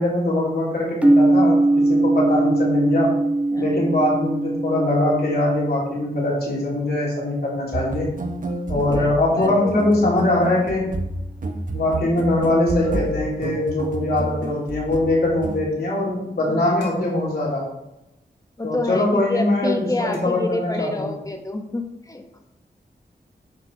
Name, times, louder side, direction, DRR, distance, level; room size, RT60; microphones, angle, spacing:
voice 1, 0.0-1.6 1.9-3.1 3.6-8.1 8.7-10.9 11.7-17.7 18.6-21.1, left 1 dB, 70° left, -4 dB, 3.2 m, -22 dB
sound 1, 1.0-8.8, right 2 dB, 10° right, 0.4 m, -22 dB
voice 2, 3.5-3.9 8.7-9.1 9.3-9.7 16.5-16.7 18.6-22.4, left 2 dB, 20° left, 4 dB, 1.3 m, -28 dB
sound 2, 7.7-15.6, right 2 dB, 55° right, 0.8 m, -30 dB
sound 3, 8.5-9.5 12.8-14.2 16.8-17.5 20.1-20.4, right 1 dB, 90° left, 2.7 m, -37 dB
10.5 x 4.0 x 4.8 m, 0.89 s
wide cardioid pair, 85°, 17 cm